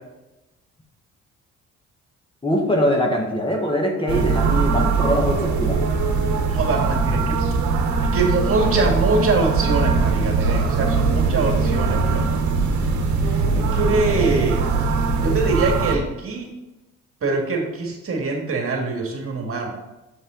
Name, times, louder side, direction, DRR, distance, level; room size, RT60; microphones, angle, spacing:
voice 1, 2.4-5.8, equal, 15° left, 1 dB, 1.4 m, -22 dB
sound 1, 4.1-16.0, right 4 dB, 70° right, 1.1 m, -21 dB
voice 2, 6.5-7.4 8.1-12.3 13.5-14.6 15.2-16.5 17.2-19.7, right 3 dB, 45° right, 1 dB, 1.8 m, -23 dB
6.6 x 5.5 x 3.8 m, 1.0 s
cardioid pair, 90°, 30 cm